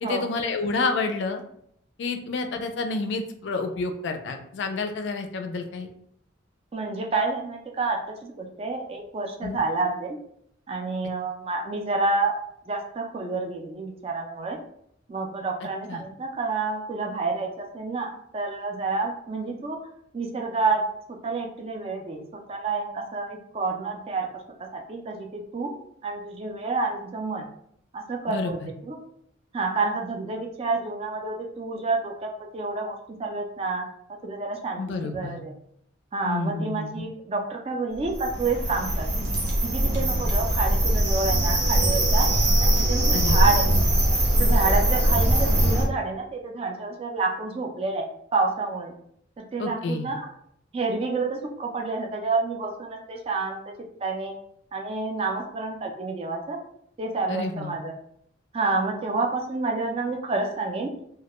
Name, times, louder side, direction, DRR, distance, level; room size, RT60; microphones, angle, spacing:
voice 1, 0.0-1.4 2.0-5.9 9.4-9.6 15.9-16.0 28.3-28.7 34.8-35.4 36.2-37.1 43.1-43.6 49.6-50.1 57.3-57.7, left 3 dB, 65° left, 6 dB, 0.3 m, -29 dB
voice 2, 6.7-10.2 10.7-12.3 12.7-14.6 15.1-19.8 20.1-20.8 21.2-22.2 22.5-24.3 24.7-25.7 26.0-27.5 27.9-28.6 28.8-29.0 29.5-33.8 34.2-35.5 36.1-39.1 39.6-42.3 42.6-43.7 44.4-48.0 48.3-48.9 49.4-50.3 50.7-53.6 54.0-54.3 54.7-56.6 57.0-57.9 58.5-60.9, right 3 dB, 30° right, 2 dB, 0.3 m, -29 dB
sound 1, 38.0-45.8, right 1 dB, 55° right, 0.7 m, -21 dB
2.3 x 2.1 x 2.9 m, 0.70 s
head